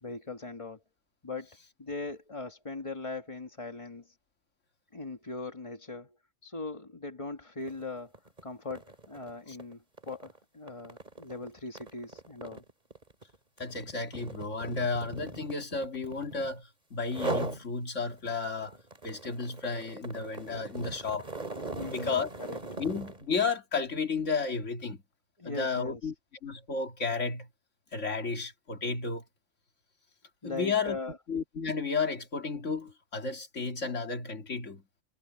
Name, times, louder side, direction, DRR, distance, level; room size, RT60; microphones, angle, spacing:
voice 1, 0.0-0.8 1.2-1.5 1.8-4.2 4.9-6.2 6.4-8.1 8.4-12.6 21.7-22.6 25.4-26.1 30.4-31.2, left 3 dB, 25° left, 1.4 m, -40 dB
sound 1, 7.6-7.8 8.1-16.6 17.0-17.6 18.1-23.2, right 2 dB, 35° right, 2.9 m, -40 dB
voice 2, 13.6-18.8 19.0-21.3 21.9-22.3 22.8-25.0 25.4-26.1 26.4-27.5 27.9-29.2 30.4-31.0 31.3-34.8, left 4 dB, 80° left, 2.7 m, -32 dB
omnidirectional pair, 1.3 m